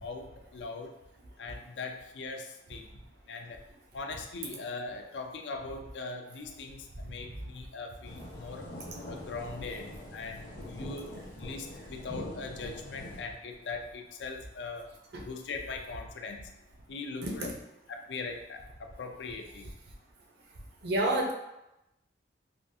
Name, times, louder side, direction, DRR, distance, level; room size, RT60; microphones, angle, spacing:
voice 1, 0.0-1.0 1.4-2.9 3.3-3.6 3.9-8.7 9.1-14.9 15.2-16.5 16.9-17.5 17.9-19.7, left 4 dB, 80° left, 4 dB, 0.4 m, -41 dB
sound 1, 8.0-13.2, left 1 dB, 50° left, 0.8 m, -43 dB
voice 2, 17.2-17.5 20.8-21.3, right 1 dB, 65° right, 0 dB, 0.6 m, -29 dB
3.4 x 2.4 x 2.6 m, 0.90 s
head